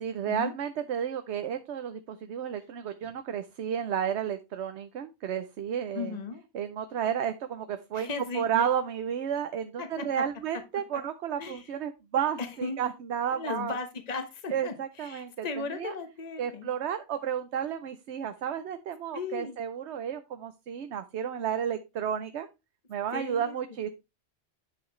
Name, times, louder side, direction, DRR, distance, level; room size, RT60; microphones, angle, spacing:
voice 1, 0.0-6.2 6.5-8.1 8.3-13.7 14.5-15.4 15.7-15.9 16.4-22.5 22.9-23.9, right 8 dB, 80° right, 9 dB, 1.0 m, -32 dB
voice 2, 5.9-6.4 7.9-8.5 9.8-10.2 11.4-11.7 12.4-12.8 13.3-16.7 19.1-19.6 23.1-23.6, left 4 dB, 40° left, 8 dB, 1.2 m, -36 dB
10.0 x 5.8 x 3.1 m, 0.24 s
omnidirectional pair, 1.1 m